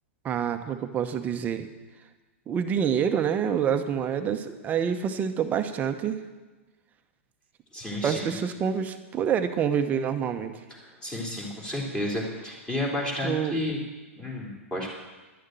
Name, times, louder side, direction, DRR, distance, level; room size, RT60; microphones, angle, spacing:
voice 1, 0.2-1.7 2.5-6.2 8.0-10.6 13.2-13.6, right 8 dB, 20° right, 8 dB, 0.9 m, -27 dB
voice 2, 7.7-8.4 10.8-13.8 14.1-14.9, left 1 dB, 10° left, -2 dB, 3.1 m, -31 dB
11.0 x 6.5 x 9.0 m, 1.2 s
hypercardioid pair, 135°, 7 cm